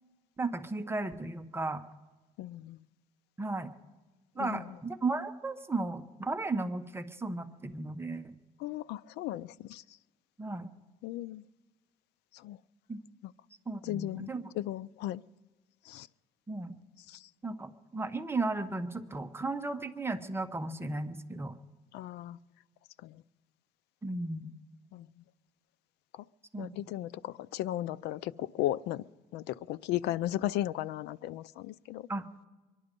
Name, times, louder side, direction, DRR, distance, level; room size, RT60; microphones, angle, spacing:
voice 1, 0.4-1.8 3.4-3.7 4.4-8.3 10.4-10.7 12.9-13.0 13.7-14.4 16.5-16.7 17.4-21.6 24.0-24.5 26.5-26.9 32.1-32.2, right 2 dB, 15° right, 7 dB, 0.9 m, -35 dB
voice 2, 2.4-2.8 4.4-4.8 8.6-10.0 11.0-11.4 12.3-12.6 13.2-13.3 13.8-15.2 15.8-16.1 17.1-17.3 21.9-22.4 23.0-23.2 24.9-25.1 26.1-26.2 26.6-29.0 29.3-32.1, left 14 dB, 85° left, 19 dB, 0.4 m, -36 dB
24.0 x 11.0 x 5.3 m, 1.2 s
cardioid pair, 110°, 17 cm